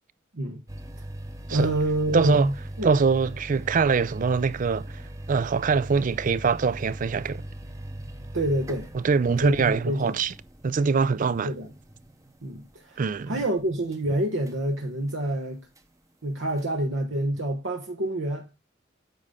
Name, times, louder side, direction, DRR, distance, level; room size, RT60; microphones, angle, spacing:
sound 1, 0.7-14.1 14.5-14.6 15.1-15.2 15.8-15.9 16.6-16.7, right 1 dB, 15° right, 0.8 m, -40 dB
voice 1, 1.5-3.0 8.3-8.9 9.4-10.1 11.4-11.7 12.4-13.0 13.3-15.7 16.2-18.5, right 1 dB, 75° right, 1.2 m, -27 dB
voice 2, 2.1-2.5 2.8-7.4 8.9-10.3 10.6-11.5 13.0-13.4, right 5 dB, 45° right, 0.4 m, -23 dB
9.1 x 5.4 x 3.6 m
head